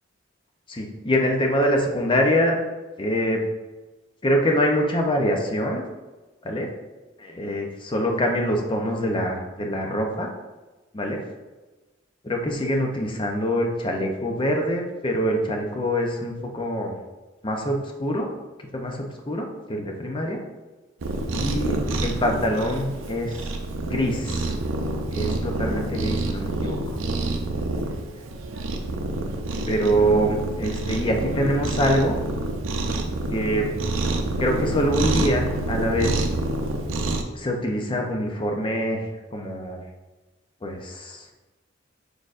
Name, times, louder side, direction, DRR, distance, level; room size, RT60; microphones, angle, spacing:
voice 1, 0.7-2.6 3.0-3.4 4.2-5.9 6.4-6.7 7.2-10.3 10.9-11.2 12.2-16.9 17.4-18.3 18.7-20.4 21.3-23.5 23.8-24.5 25.1-26.8 29.7-32.2 33.3-33.7 34.4-36.3 37.3-39.0 39.3-39.9 40.6-41.3, equal, 25° left, 2 dB, 0.6 m, -24 dB
Cat, 21.0-37.2, right 2 dB, 80° right, 0.5 m, -27 dB
4.8 x 4.4 x 2.5 m, 1.2 s
head